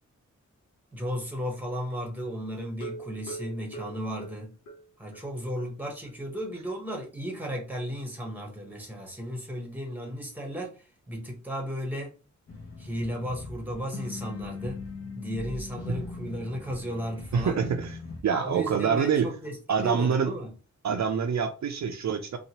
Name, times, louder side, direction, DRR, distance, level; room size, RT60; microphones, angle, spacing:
voice 1, 0.9-4.5 5.0-12.2 12.8-14.8 15.2-17.6 18.3-20.5, equal, 5° right, 0.9 m, -35 dB
sound 1, 2.7-5.3 5.6-5.7 6.1-6.2 6.5-6.6, right 3 dB, 70° left, 1.0 m, -42 dB
sound 2, 12.5-18.2, left 3 dB, 50° left, 0.8 m, -40 dB
voice 2, 17.3-18.0 18.2-19.3 19.7-20.3 20.8-22.4, right 6 dB, 65° right, 0.4 m, -26 dB
2.8 x 2.2 x 2.8 m
wide cardioid pair, 120°, 31 cm